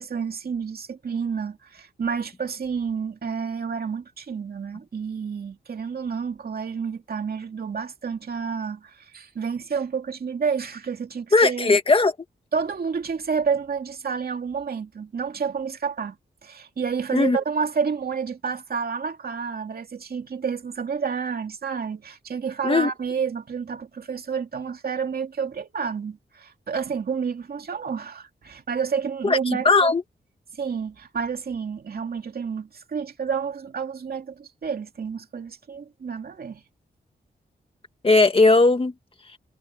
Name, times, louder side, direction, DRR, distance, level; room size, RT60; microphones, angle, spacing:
voice 1, 0.0-11.8 12.5-16.2 16.4-29.9 30.5-36.6, right 6 dB, 55° right, 2.5 m, -29 dB
voice 2, 11.3-12.1 17.1-17.4 22.6-22.9 29.2-30.0 38.0-38.9 39.3-39.4, left 3 dB, 30° left, 2.0 m, -18 dB
wide cardioid pair, 130°, 19 cm